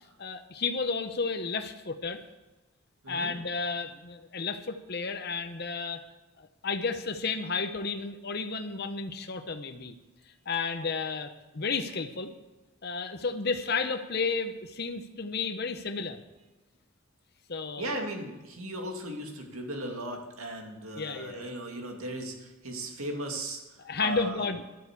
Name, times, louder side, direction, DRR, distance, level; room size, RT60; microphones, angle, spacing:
voice 1, 0.2-2.2 3.1-6.0 6.4-9.9 10.5-12.3 12.8-16.2 17.5-18.1 21.0-21.5 23.8-24.6, left 4 dB, 50° left, 7 dB, 0.8 m, -32 dB
voice 2, 17.8-23.6 24.0-24.5, right 1 dB, 90° right, 2 dB, 2.5 m, -37 dB
11.5 x 9.1 x 8.4 m, 1.1 s
head